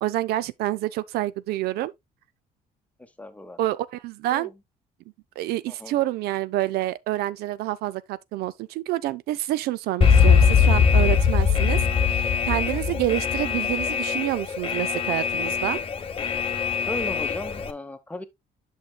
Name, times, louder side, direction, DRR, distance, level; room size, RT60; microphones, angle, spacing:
voice 1, 0.0-1.9 3.6-4.5 5.4-15.8, right 15 dB, 85° right, 0.4 m, -28 dB
voice 2, 3.2-3.6 4.3-4.5 5.7-6.0 12.7-13.0 16.8-18.2, left 1 dB, 10° left, 0.9 m, -36 dB
Alarm, 10.0-17.7, left 6 dB, 35° left, 0.9 m, -21 dB
8.6 x 6.5 x 2.2 m
cardioid pair, 120°, 16 cm